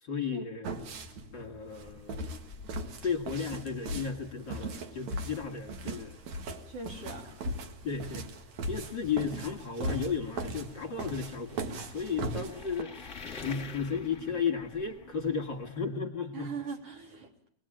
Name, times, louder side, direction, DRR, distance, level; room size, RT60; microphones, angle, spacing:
voice 1, 0.0-0.7 1.3-2.2 3.0-6.2 7.8-8.3 8.7-11.6 11.9-16.5, left 6 dB, 40° left, 3 dB, 2.2 m, -34 dB
sound 1, 0.6-12.8, right 1 dB, 65° right, 3.0 m, -39 dB
sound 2, 1.8-15.8, left 5 dB, 25° left, 3.0 m, -50 dB
voice 2, 6.7-7.3 16.3-17.5, right 4 dB, 50° right, 3 dB, 4.1 m, -40 dB
26.0 x 20.5 x 8.9 m, 0.62 s
omnidirectional pair, 3.5 m